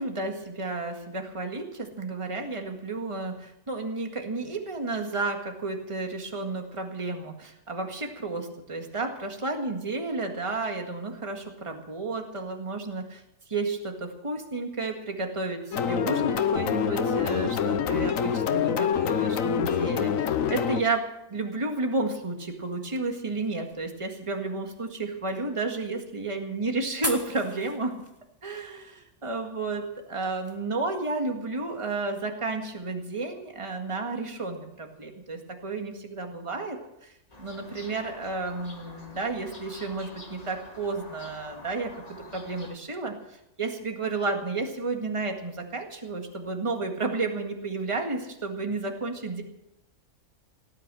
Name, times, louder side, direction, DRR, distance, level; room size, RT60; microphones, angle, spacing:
voice 1, 0.0-13.2 13.5-28.0 28.4-37.1 37.4-41.9 42.3-49.4, right 3 dB, 20° right, 3 dB, 1.9 m, -32 dB
sound 1, 15.7-20.8, left 7 dB, 65° left, 1.2 m, -26 dB
sound 2, 22.2-30.6, left 1 dB, 10° left, 1.8 m, -43 dB
sound 3, 37.3-42.7, left 2 dB, 25° left, 2.0 m, -47 dB
18.0 x 9.8 x 7.6 m, 0.85 s
omnidirectional pair, 1.6 m